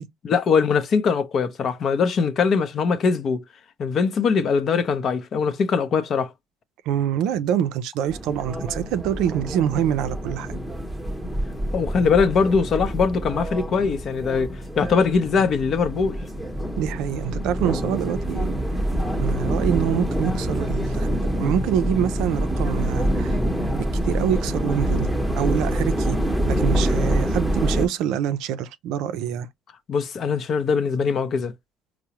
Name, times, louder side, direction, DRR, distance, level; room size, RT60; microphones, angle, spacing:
voice 1, 0.2-3.4 3.8-6.3 11.7-16.2 29.9-31.5, left 5 dB, 50° left, 0.6 m, -22 dB
voice 2, 6.9-10.6 16.8-18.6 19.2-23.4 23.7-25.1 25.4-26.2 26.5-29.5, right 10 dB, 75° right, 0.4 m, -25 dB
sound 1, 8.1-27.9, equal, 5° right, 0.8 m, -26 dB
4.6 x 2.0 x 2.8 m
supercardioid pair, 85°, 0 cm